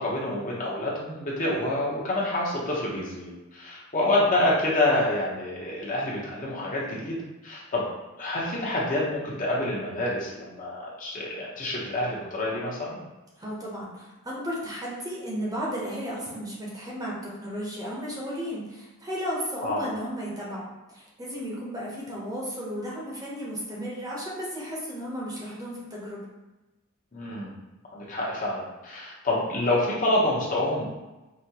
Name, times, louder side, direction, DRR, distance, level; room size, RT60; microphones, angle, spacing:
voice 1, 0.0-7.2 7.4-7.8 8.2-13.0 19.6-19.9 27.1-27.5 27.9-30.8, left 1 dB, 40° left, -5 dB, 1.0 m, -27 dB
voice 2, 13.4-26.2, equal, 15° right, -5 dB, 0.8 m, -34 dB
5.1 x 2.8 x 2.9 m, 1.1 s
head